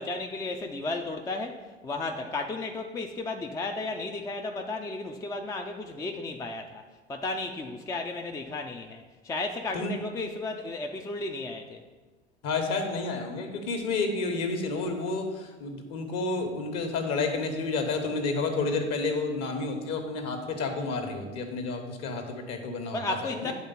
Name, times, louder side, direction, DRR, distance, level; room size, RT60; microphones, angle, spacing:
voice 1, 0.0-11.8 22.9-23.5, left 2 dB, 10° left, 4 dB, 0.4 m, -34 dB
voice 2, 12.4-23.5, left 3 dB, 45° left, 5 dB, 1.3 m, -30 dB
9.4 x 3.6 x 5.5 m, 1.3 s
figure-of-eight pair, 75°, 34 cm